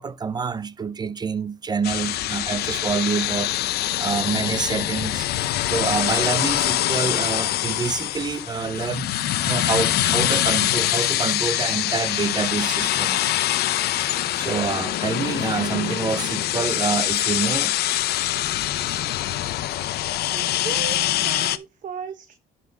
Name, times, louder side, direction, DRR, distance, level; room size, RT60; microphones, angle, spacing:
voice 1, 0.0-3.5 4.0-5.3 5.6-13.4 14.4-17.8 18.9-19.0 19.7-19.8, right 5 dB, 25° right, 0.6 m, -27 dB
sound 1, 1.8-21.6, left 14 dB, 70° left, 0.7 m, -24 dB
voice 2, 20.2-22.3, right 7 dB, 50° right, 1.2 m, -36 dB
11.0 x 4.2 x 4.9 m
cardioid pair, 110°, 17 cm